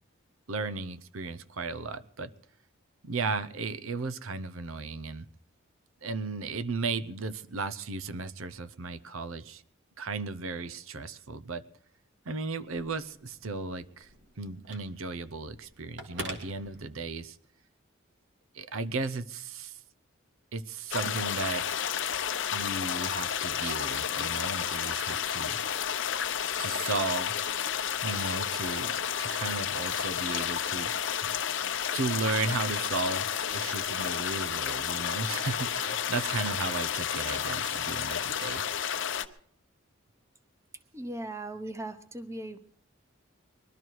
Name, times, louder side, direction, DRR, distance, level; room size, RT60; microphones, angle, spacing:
voice 1, 0.5-2.3 3.0-5.3 6.0-9.6 10.0-11.6 12.2-14.1 14.4-17.4 18.5-19.8 20.5-21.7 22.5-25.6 26.6-27.5 28.0-31.0 31.9-38.6, right 4 dB, 80° right, 13 dB, 0.7 m, -35 dB
Telephone, 12.6-17.4, right 1 dB, 60° right, 2.4 m, -46 dB
sound 1, 20.9-39.3, left 8 dB, 60° left, 0.8 m, -31 dB
voice 2, 40.9-42.6, right 1 dB, 15° right, 10 dB, 0.9 m, -38 dB
21.5 x 12.5 x 4.7 m, 0.66 s
head